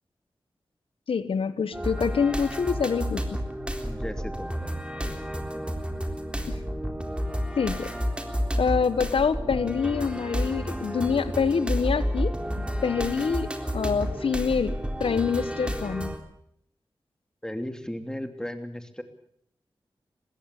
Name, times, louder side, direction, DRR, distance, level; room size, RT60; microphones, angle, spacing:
voice 1, 1.1-3.4 6.5-6.6 7.6-7.9 8.6-12.3 12.8-16.1, left 6 dB, 85° left, 14 dB, 1.2 m, -26 dB
sound 1, 1.7-16.2, equal, 10° right, 3.6 m, -31 dB
voice 2, 3.8-5.8 17.4-19.0, left 1 dB, 5° left, 7 dB, 2.9 m, -37 dB
21.0 x 15.5 x 8.4 m, 0.71 s
cardioid pair, 40°, 9 cm